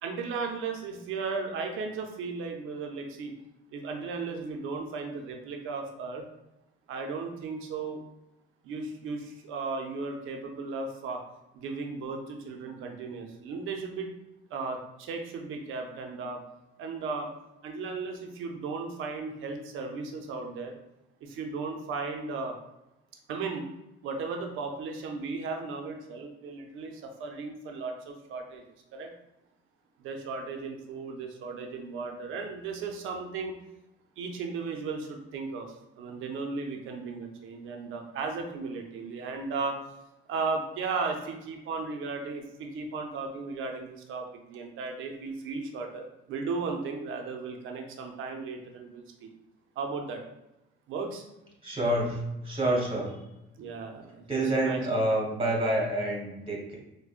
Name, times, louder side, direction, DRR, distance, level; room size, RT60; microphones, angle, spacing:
voice 1, 0.0-3.3 3.7-6.2 6.9-8.0 8.6-11.2 11.5-14.1 14.5-16.4 16.8-17.3 17.6-20.7 21.2-22.5 23.3-23.7 24.0-28.6 28.9-29.1 30.0-33.6 34.2-39.8 40.3-49.3 49.8-50.2 50.9-51.2 53.6-54.3 54.5-54.8, right 4 dB, 85° right, 3 dB, 0.6 m, -35 dB
voice 2, 51.6-53.1 54.3-56.8, right 1 dB, 25° right, -2 dB, 1.3 m, -28 dB
4.8 x 2.2 x 2.4 m, 0.93 s
cardioid pair, 90°, 20 cm